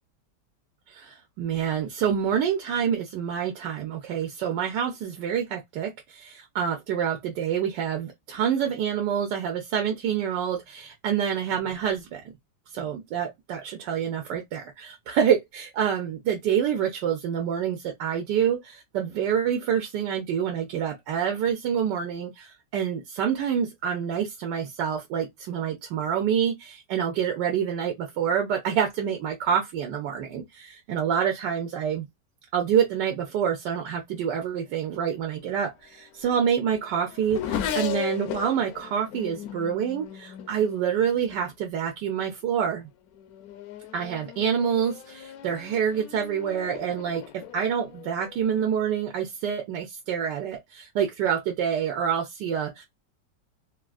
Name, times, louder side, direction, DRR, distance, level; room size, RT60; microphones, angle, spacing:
voice 1, 1.0-12.2 12.7-32.1 32.5-42.9 43.9-52.8, right 8 dB, 85° right, 1.3 m, -27 dB
Race car auto racing / Accelerating revving vroom, 35.7-41.5 42.3-42.7 43.1-49.0, left 9 dB, 70° left, 1.0 m, -37 dB
3.6 x 2.4 x 2.4 m
omnidirectional pair, 1.8 m